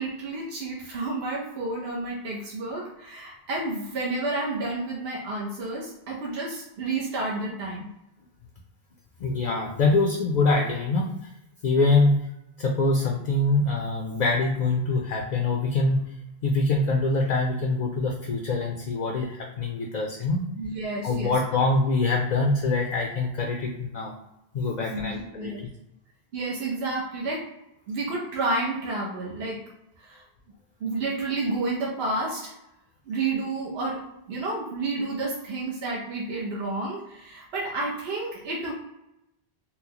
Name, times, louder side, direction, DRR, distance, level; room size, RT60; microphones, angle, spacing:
voice 1, 0.0-7.9 20.6-21.3 24.9-25.6 26.3-27.4 27.9-29.6 30.0-30.2 30.8-32.6 33.1-34.0 34.3-38.7, right 2 dB, 80° right, -4 dB, 1.0 m, -30 dB
voice 2, 9.2-11.3 11.6-12.3 12.6-16.1 16.4-20.4 21.0-24.1 24.5-25.5, left 3 dB, 55° left, 1 dB, 0.5 m, -24 dB
4.3 x 2.0 x 2.8 m, 0.87 s
omnidirectional pair, 1.1 m